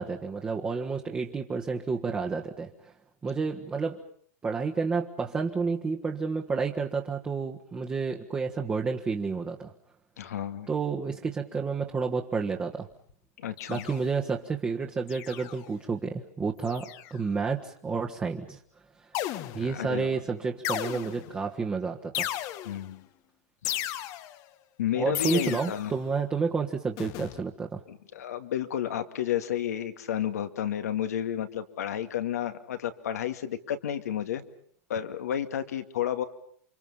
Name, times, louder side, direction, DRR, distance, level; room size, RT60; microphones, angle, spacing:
voice 1, 0.0-2.9 3.2-4.0 4.4-9.7 10.7-12.9 13.7-18.6 19.5-22.3 25.0-27.8, right 5 dB, 15° right, 1 dB, 1.6 m, -30 dB
voice 2, 10.2-10.7 13.4-13.9 19.5-20.2 22.6-23.0 24.8-25.9 27.9-34.4 34.9-36.2, left 10 dB, 85° left, 8 dB, 2.3 m, -31 dB
sound 1, 13.6-14.3 15.1-15.7 16.6-17.2 19.1-19.8 20.6-21.4 22.1-22.9 23.6-24.4 25.1-25.9 27.0-27.4, left 13 dB, 40° left, 1.3 m, -35 dB
29.5 x 25.0 x 5.7 m, 0.62 s
hypercardioid pair, 130°, 8 cm